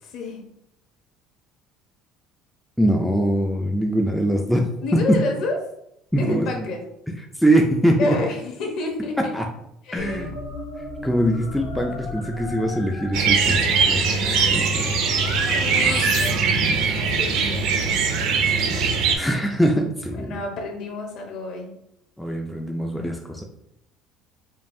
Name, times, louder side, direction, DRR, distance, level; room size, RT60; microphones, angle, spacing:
voice 1, 0.0-0.4 4.8-5.6 6.2-6.8 8.0-9.3 9.8-10.3 15.5-16.5 17.0-17.9 18.3-18.8 20.1-21.7, left 2 dB, 55° left, 1 dB, 0.9 m, -29 dB
voice 2, 2.8-5.2 6.1-6.6 7.4-8.2 9.3-9.4 9.9-10.3 11.0-14.0 14.5-14.9 19.1-20.4 22.2-23.4, right 1 dB, ahead, 1 dB, 0.3 m, -22 dB
sound 1, 10.0-16.3, left 3 dB, 85° left, 1.3 m, -34 dB
sound 2, 13.1-19.2, right 5 dB, 60° right, 0.5 m, -21 dB
5.3 x 2.4 x 2.6 m, 0.79 s
cardioid pair, 160°, 0 cm